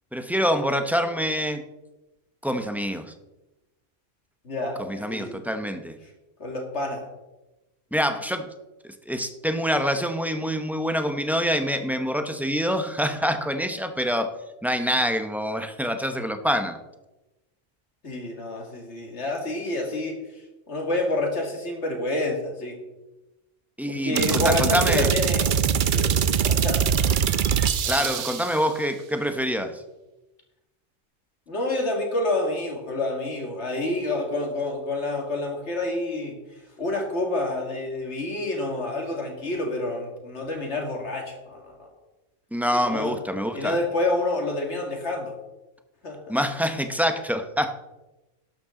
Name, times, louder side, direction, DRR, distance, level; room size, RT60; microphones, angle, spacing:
voice 1, 0.1-1.6 2.4-3.1 4.8-6.0 7.9-8.5 8.8-14.3 14.6-16.8 23.8-25.1 27.9-29.8 42.5-43.7 46.3-47.7, equal, ahead, 7 dB, 0.6 m, -26 dB
voice 2, 4.4-5.4 6.4-7.1 18.0-20.2 20.7-22.8 23.9-26.9 27.8-28.2 31.5-36.3 36.8-41.9 42.7-43.2 43.5-45.3 46.0-46.4, left 2 dB, 65° left, 1 dB, 2.5 m, -28 dB
sound 1, 24.2-28.6, right 8 dB, 55° right, 0.6 m, -23 dB
12.0 x 11.5 x 3.8 m, 1.0 s
omnidirectional pair, 1.3 m